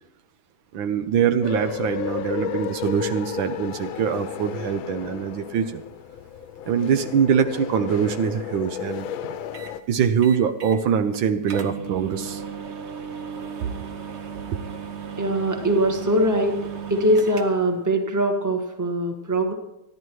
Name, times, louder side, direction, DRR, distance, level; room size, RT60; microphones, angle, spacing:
voice 1, 0.7-5.8 6.7-9.1 9.9-12.4 13.6-13.7, right 7 dB, 75° right, 9 dB, 1.5 m, -23 dB
sound 1, 1.4-9.8, left 9 dB, 80° left, 1.5 m, -33 dB
sound 2, 9.5-9.8 10.2-10.8 11.1-11.2 11.5-17.8, right 7 dB, 50° right, 0.8 m, -35 dB
voice 2, 15.2-16.6 16.9-19.5, right 1 dB, 10° right, 4 dB, 1.3 m, -22 dB
28.5 x 11.0 x 3.1 m, 0.87 s
omnidirectional pair, 2.2 m